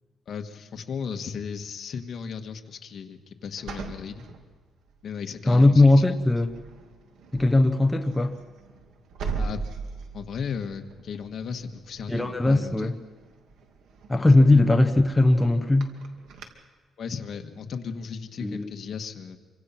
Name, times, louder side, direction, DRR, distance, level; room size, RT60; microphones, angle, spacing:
voice 1, 0.3-4.2 5.0-6.0 9.4-9.6 10.1-13.0 17.0-19.4, left 6 dB, 50° left, 5 dB, 1.8 m, -35 dB
sound 1, 3.6-5.1 5.6-5.9 6.2-16.5, right 4 dB, 75° right, 2.5 m, -40 dB
voice 2, 5.5-6.5 7.3-8.3 12.1-12.9 14.1-15.9 18.4-18.7, left 2 dB, 10° left, 5 dB, 1.0 m, -19 dB
27.0 x 24.5 x 6.0 m, 1.5 s
cardioid pair, 140°, 0 cm